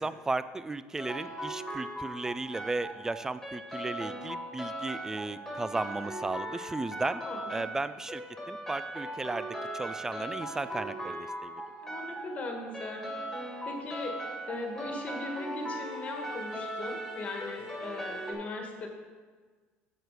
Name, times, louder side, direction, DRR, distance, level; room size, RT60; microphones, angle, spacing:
voice 1, 0.0-7.2 7.5-8.2 8.5-9.5 9.7-11.6, right 3 dB, 10° right, 14 dB, 0.3 m, -35 dB
sound 1, 1.0-18.3, right 1 dB, 5° left, 2.1 m, -39 dB
voice 2, 7.0-7.7 11.8-13.1 13.6-14.2 14.5-18.9, left 3 dB, 35° left, 2 dB, 1.5 m, -39 dB
7.8 x 4.7 x 6.7 m, 1.5 s
cardioid pair, 115°, 4 cm